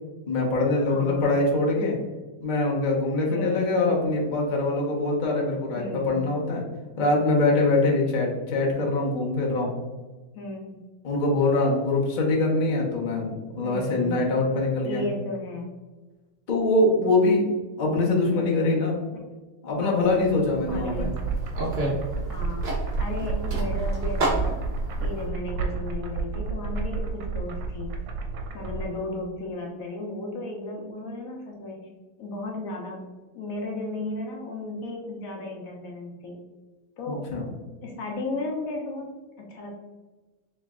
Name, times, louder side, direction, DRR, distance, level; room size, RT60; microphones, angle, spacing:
voice 1, 0.3-2.0 2.4-6.6 7.0-9.7 11.0-13.3 13.6-15.0 16.5-17.5 17.8-19.0 19.6-21.1 37.1-37.5, left 2 dB, 85° left, -2 dB, 0.4 m, -23 dB
voice 2, 0.9-1.4 3.3-3.7 5.8-6.1 10.3-10.8 13.6-14.3 14.8-15.7 18.3-18.6 19.8-20.0 20.7-21.0 22.3-24.7 25.0-27.9 28.5-31.8 32.2-33.0 33.3-36.4 37.0-37.2 37.8-39.1 39.4-39.8, left 2 dB, 65° left, 0 dB, 0.8 m, -34 dB
sound 1, 20.0-25.3, right 2 dB, 45° right, 0.8 m, -31 dB
sound 2, 20.7-28.9, right 4 dB, 75° right, 1.2 m, -30 dB
3.2 x 3.0 x 3.5 m, 1.2 s
omnidirectional pair, 2.0 m